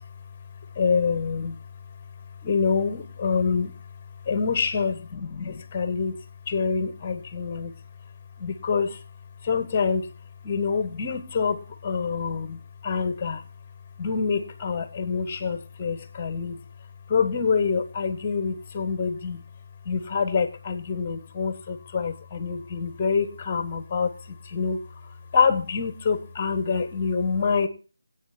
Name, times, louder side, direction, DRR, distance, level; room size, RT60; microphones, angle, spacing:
voice 1, 0.8-1.6 2.4-3.7 4.3-6.2 6.5-7.7 8.4-9.0 9.4-10.1 10.4-13.4 14.0-16.6 17.1-19.4 19.9-24.1 24.5-24.8 25.3-27.7, left 5 dB, 25° left, 1.3 m, -26 dB
24.5 x 8.5 x 4.3 m
figure-of-eight pair, 165°, 0 cm